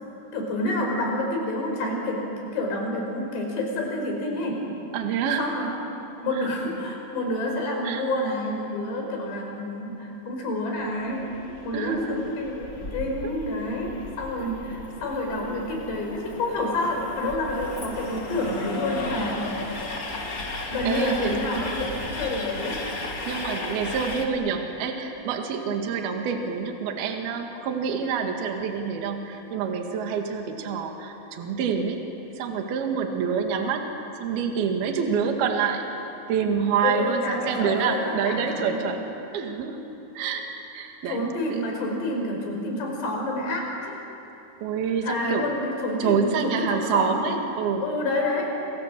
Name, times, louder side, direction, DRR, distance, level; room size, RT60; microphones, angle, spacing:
voice 1, 0.3-4.6 5.4-5.7 6.2-11.3 11.6-13.9 14.2-19.8 20.7-22.8 36.8-38.9 41.1-43.7 45.0-47.2 47.8-48.5, left 1 dB, 60° left, 0 dB, 7.2 m, -28 dB
voice 2, 4.9-5.5 6.3-6.6 7.8-8.1 11.7-12.2 20.6-21.4 23.3-32.0 32.4-33.9 34.2-35.9 36.3-39.0 39.3-39.8 40.2-40.5 40.7-41.7 44.6-45.6 46.0-47.9, right 6 dB, 60° right, 3 dB, 3.5 m, -27 dB
Train, 10.8-24.3, left 2 dB, 40° left, 1.2 m, -35 dB
29.5 x 26.5 x 7.6 m, 3.0 s
omnidirectional pair, 5.7 m